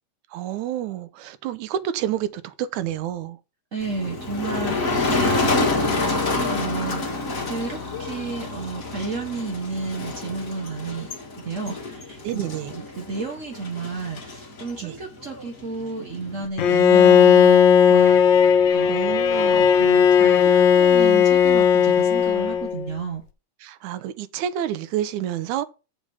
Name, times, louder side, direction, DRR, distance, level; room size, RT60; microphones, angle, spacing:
voice 1, 0.3-3.4 12.2-12.7 14.8-15.0 18.9-19.7 23.6-25.7, right 11 dB, 85° right, 2.2 m, -29 dB
voice 2, 3.7-7.2 7.5-11.1 11.4-12.4 12.7-23.2, right 4 dB, 55° right, 0.8 m, -32 dB
Motor vehicle (road), 3.8-16.5, left 3 dB, 35° left, 1.7 m, -28 dB
Bowed string instrument, 16.6-22.9, left 7 dB, 85° left, 1.0 m, -16 dB
7.3 x 5.0 x 6.9 m
omnidirectional pair, 3.3 m